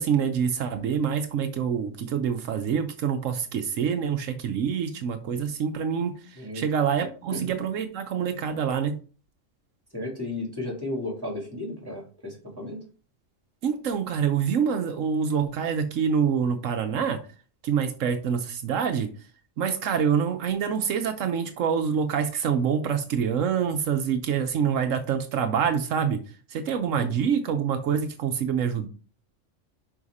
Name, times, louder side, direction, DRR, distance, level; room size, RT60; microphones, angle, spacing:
voice 1, 0.0-9.0 13.6-17.2 17.6-19.1 19.6-26.2 26.5-28.9, right 7 dB, 80° right, 1.1 m, -26 dB
voice 2, 7.0-7.5 9.9-12.8 27.0-27.1, left 1 dB, 15° right, 3.1 m, -34 dB
5.5 x 5.5 x 4.9 m
omnidirectional pair, 1.3 m